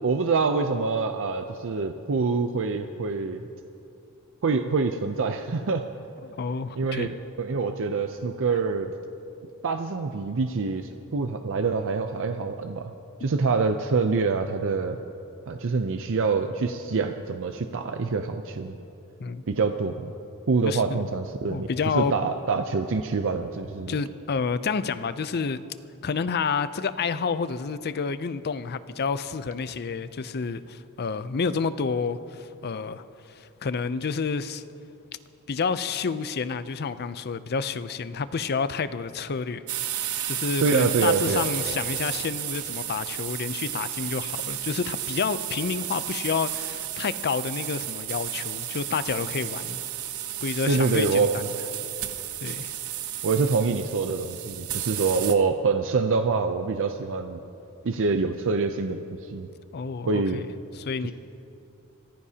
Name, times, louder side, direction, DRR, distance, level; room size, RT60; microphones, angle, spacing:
voice 1, 0.0-3.4 4.4-5.8 6.8-7.1 7.4-8.9 9.6-12.9 13.2-15.0 15.5-18.8 19.5-20.1 20.5-21.7 21.9-24.0 40.6-41.5 50.7-51.3 53.2-57.4 57.8-59.5 60.1-60.4, right 4 dB, 60° right, 7 dB, 0.5 m, -25 dB
voice 2, 6.2-7.1 19.2-19.4 20.7-21.1 21.5-22.1 23.9-25.6 26.0-34.6 35.5-39.6 40.3-49.8 50.4-51.5 52.4-52.7 59.7-60.5 60.7-61.1, left 5 dB, 45° left, 14 dB, 0.5 m, -29 dB
sound 1, 39.7-55.4, right 11 dB, 75° right, 0.9 m, -33 dB
25.0 x 15.0 x 2.8 m, 2.7 s
head